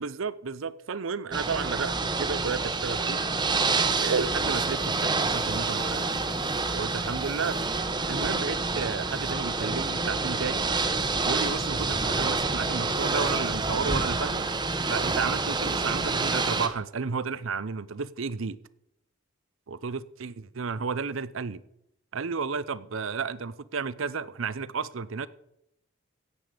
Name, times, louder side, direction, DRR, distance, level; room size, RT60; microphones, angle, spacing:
voice 1, 0.0-3.2 4.0-6.1 6.7-7.6 8.1-10.7 11.2-14.5 14.9-18.6 19.7-21.6 22.1-25.3, right 5 dB, 75° right, 0.6 m, -32 dB
Ocean / Boat Water vehicle, 1.3-16.7, right 3 dB, 20° right, 1.0 m, -28 dB
16.5 x 7.8 x 5.1 m
head